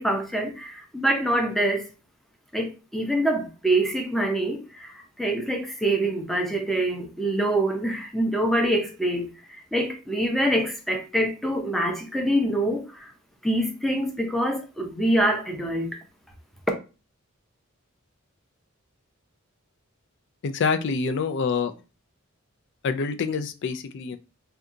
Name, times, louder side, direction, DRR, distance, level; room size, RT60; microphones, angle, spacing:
voice 1, 0.0-1.9 2.5-9.3 9.7-13.1 13.4-16.0, right 1 dB, ahead, 0.6 m, -25 dB
voice 2, 20.4-21.7 22.8-24.2, left 5 dB, 60° left, 0.4 m, -26 dB
2.7 x 2.3 x 3.6 m
head